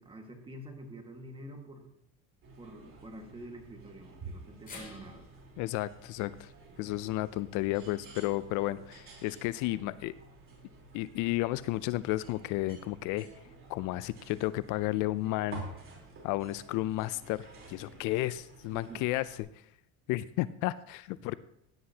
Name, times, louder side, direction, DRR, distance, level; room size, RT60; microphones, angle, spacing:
voice 1, 0.0-1.9 2.6-5.3 18.7-19.1, right 1 dB, 15° right, 3 dB, 1.7 m, -47 dB
sound 1, 2.4-19.4, right 3 dB, 40° right, 3.7 m, -51 dB
sound 2, 4.7-8.9 9.3-9.4 10.5-10.6, left 4 dB, 25° left, 2.8 m, -54 dB
voice 2, 5.6-6.5 6.8-10.1 10.9-13.3 13.7-15.7 16.2-19.3 20.1-21.4, left 17 dB, 65° left, 16 dB, 0.5 m, -32 dB
16.0 x 9.5 x 2.8 m, 0.76 s
cardioid pair, 125°, 33 cm